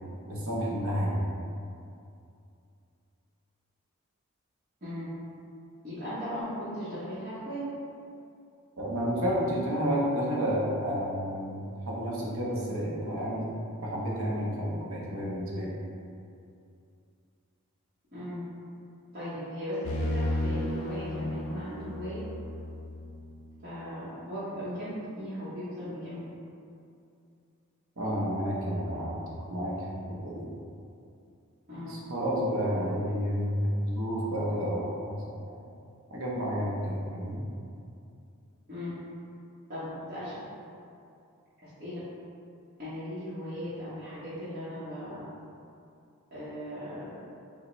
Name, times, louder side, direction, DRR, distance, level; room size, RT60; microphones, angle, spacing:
voice 1, 0.3-1.2 8.8-13.5 13.8-15.7 28.0-30.5 31.8-35.2 36.1-37.5, equal, 65° right, -4 dB, 0.8 m, -30 dB
voice 2, 5.8-7.6 18.1-18.4 19.1-22.2 23.6-26.2 31.7-31.9 32.7-32.9 38.7-38.9 39.7-40.4 41.6-42.0 42.8-45.2 46.3-47.1, equal, 40° right, -13 dB, 1.0 m, -37 dB
sound 1, 19.8-23.6, left 1 dB, 75° left, 0.5 m, -33 dB
5.0 x 2.2 x 3.1 m, 2.5 s
head